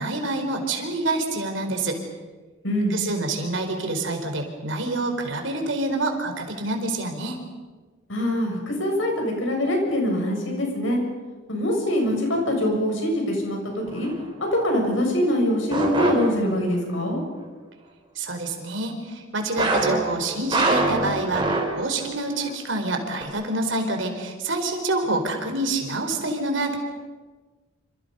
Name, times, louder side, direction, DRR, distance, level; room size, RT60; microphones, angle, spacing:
voice 1, 0.0-2.0 2.9-7.4 18.2-26.8, right 2 dB, 65° right, 5 dB, 4.4 m, -27 dB
voice 2, 8.1-11.0 11.5-14.1 14.5-17.2, left 1 dB, 70° left, 1 dB, 7.7 m, -23 dB
sound 1, 13.9-14.2 15.7-16.8 19.6-22.1 22.4-22.5 23.2-23.3, right 2 dB, 25° right, 4.8 m, -24 dB
28.0 x 27.5 x 5.6 m, 1.3 s
head